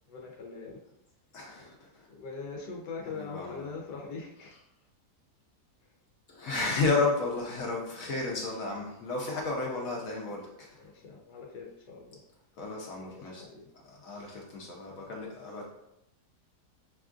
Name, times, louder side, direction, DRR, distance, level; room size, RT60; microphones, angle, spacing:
voice 1, 0.1-0.8 2.1-4.5 9.4-10.1 10.7-12.2 13.0-14.3 14.9-15.6, left 4 dB, 90° left, -2 dB, 1.3 m, -43 dB
voice 2, 1.3-2.1 3.1-4.0 6.3-10.8 12.6-13.4 13.8-15.7, left 3 dB, 65° left, -2 dB, 1.1 m, -33 dB
6.1 x 2.4 x 2.4 m, 0.83 s
omnidirectional pair, 1.7 m